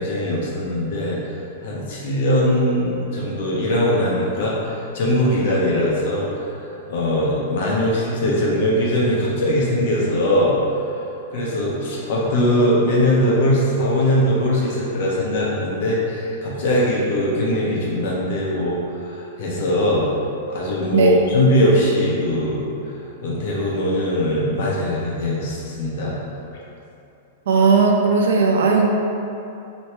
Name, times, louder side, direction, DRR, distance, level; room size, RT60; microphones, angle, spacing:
voice 1, 0.0-1.3 1.6-10.6 11.3-20.1 20.5-26.2, left 1 dB, 65° left, -5 dB, 1.1 m, -21 dB
voice 2, 27.5-28.9, right 4 dB, 80° right, 1 dB, 0.6 m, -16 dB
3.2 x 3.1 x 4.4 m, 2.8 s
supercardioid pair, 150°, 0 cm